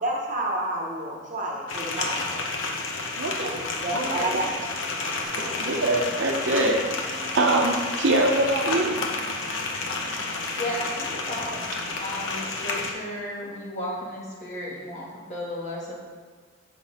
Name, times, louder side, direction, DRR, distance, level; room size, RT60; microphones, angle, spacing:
voice 1, 0.0-2.4 3.8-4.4, right 1 dB, 40° right, -1 dB, 1.1 m, -29 dB
sound 1, 1.7-12.9, left 3 dB, 75° left, 0.9 m, -30 dB
voice 2, 3.2-3.6 3.9-4.4 5.4-9.1, right 2 dB, 65° right, 2 dB, 0.7 m, -24 dB
sound 2, 5.2-11.9, right 1 dB, 55° left, 1.6 m, -46 dB
voice 3, 10.6-11.6 12.0-15.9, left 1 dB, 35° left, -5 dB, 1.8 m, -34 dB
6.0 x 5.8 x 4.2 m, 1.5 s
head